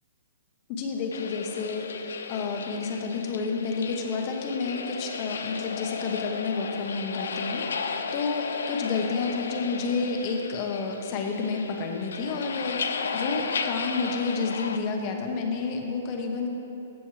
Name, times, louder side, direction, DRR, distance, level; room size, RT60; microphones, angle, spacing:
voice 1, 0.7-7.7 8.1-16.5, left 4 dB, 25° left, 3 dB, 0.8 m, -30 dB
sound 1, 1.1-14.8, left 5 dB, 90° left, 0.5 m, -34 dB
14.0 x 7.1 x 3.1 m, 3.0 s
hypercardioid pair, 170°, 0 cm